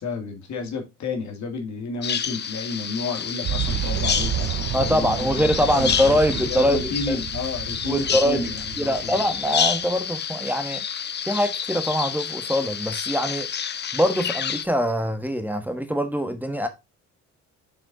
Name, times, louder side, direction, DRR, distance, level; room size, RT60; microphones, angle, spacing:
voice 1, 0.0-9.2, left 4 dB, 65° left, 2.1 m, -31 dB
Bird vocalization bird call bird song, 2.0-14.7, left 8 dB, 35° left, 0.6 m, -29 dB
Boom, 3.4-10.0, right 10 dB, 55° right, 0.6 m, -30 dB
voice 2, 4.7-7.2 7.8-8.5 8.8-10.8 11.2-13.5 13.9-16.7, equal, 5° right, 1.3 m, -23 dB
6.5 x 4.2 x 3.9 m
cardioid pair, 90°, 30 cm